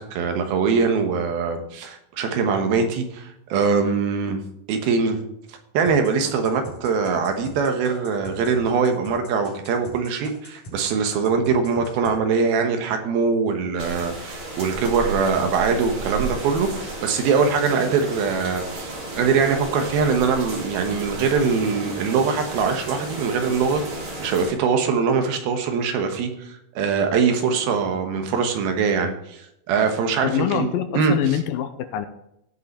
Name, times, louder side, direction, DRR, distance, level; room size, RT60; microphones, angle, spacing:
voice 1, 0.0-4.4 4.7-5.2 5.7-23.8 24.2-31.1, right 5 dB, 80° right, 5 dB, 3.1 m, -22 dB
sound 1, 5.9-10.8 11.1-12.2, right 1 dB, 50° left, 4.6 m, -41 dB
sound 2, 13.8-24.5, right 2 dB, 40° right, 3.0 m, -33 dB
voice 2, 30.2-32.1, left 11 dB, 80° left, 9 dB, 2.3 m, -25 dB
16.5 x 5.5 x 4.3 m, 0.80 s
omnidirectional pair, 4.3 m